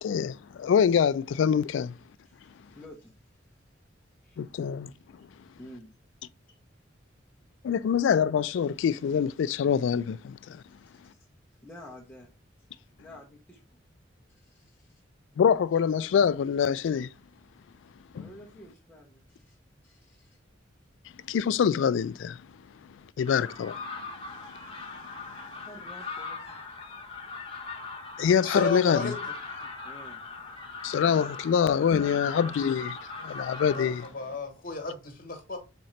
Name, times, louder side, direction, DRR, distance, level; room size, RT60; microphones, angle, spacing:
voice 1, 0.0-1.9 4.4-4.9 7.6-10.6 15.4-17.1 18.1-18.3 21.3-22.4 23.2-23.8 28.2-29.1 30.8-32.9 33.2-34.1, left 7 dB, 70° left, 0.3 m, -25 dB
voice 2, 2.3-3.1 4.2-4.4 5.6-5.9 11.0-11.3 11.6-12.3 12.6-12.7 13.0-13.6 14.3-15.0 18.1-19.6 19.8-20.4 25.6-26.6 29.8-30.2 31.9-32.5, left 1 dB, 5° left, 0.7 m, -50 dB
sound 1, 23.3-34.1, left 4 dB, 30° left, 1.0 m, -40 dB
voice 3, 28.4-29.1 33.7-35.6, left 3 dB, 50° left, 1.3 m, -32 dB
4.2 x 3.7 x 3.2 m
head